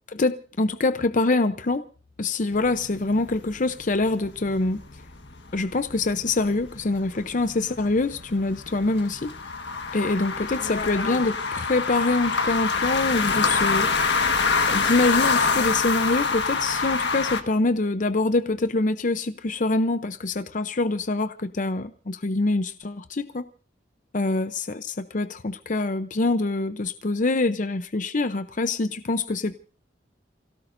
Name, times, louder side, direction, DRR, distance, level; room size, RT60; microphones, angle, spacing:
voice 1, 0.1-1.9 2.2-4.9 5.5-9.3 9.9-13.9 14.7-23.5 24.1-29.5, left 2 dB, 45° left, 0.7 m, -25 dB
sound 1, 2.5-17.4, left 4 dB, 70° left, 1.5 m, -26 dB
29.0 x 17.0 x 2.6 m
head